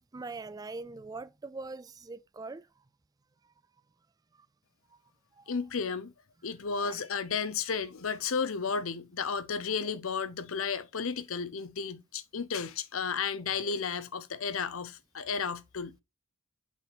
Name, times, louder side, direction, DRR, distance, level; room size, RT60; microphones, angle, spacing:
voice 1, 0.0-2.7 4.9-5.0 5.4-5.5 6.8-7.0 9.8-9.9 13.5-13.7, right 3 dB, 15° right, 0.3 m, -43 dB
voice 2, 5.5-6.1 6.4-16.0, left 5 dB, 70° left, 0.7 m, -33 dB
8.1 x 4.2 x 4.3 m
head